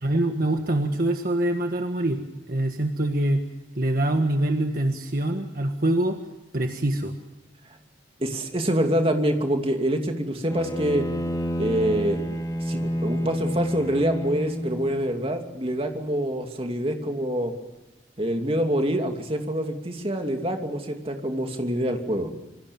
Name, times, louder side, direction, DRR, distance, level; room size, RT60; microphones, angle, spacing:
voice 1, 0.0-2.2 2.5-3.4 3.7-6.2 6.5-7.1, right 1 dB, 50° right, 5 dB, 1.6 m, -24 dB
voice 2, 8.2-11.1 11.6-17.5 18.2-22.3, equal, 30° right, 4 dB, 2.7 m, -26 dB
Bowed string instrument, 10.5-14.9, equal, 20° left, 3.4 m, -29 dB
26.5 x 23.5 x 7.1 m, 1.0 s
head